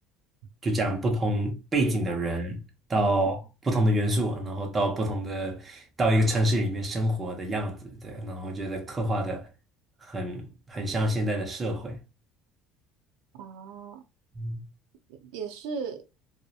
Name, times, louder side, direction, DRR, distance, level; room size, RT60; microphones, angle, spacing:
voice 1, 0.6-2.6 2.9-9.5 10.0-12.0 14.4-14.6, right 1 dB, 20° right, 0.6 m, -27 dB
voice 2, 2.1-2.4 2.9-3.1 13.3-14.0 15.1-16.0, right 6 dB, 85° right, 0.5 m, -38 dB
2.7 x 2.0 x 2.3 m
cardioid pair, 120°, 0 cm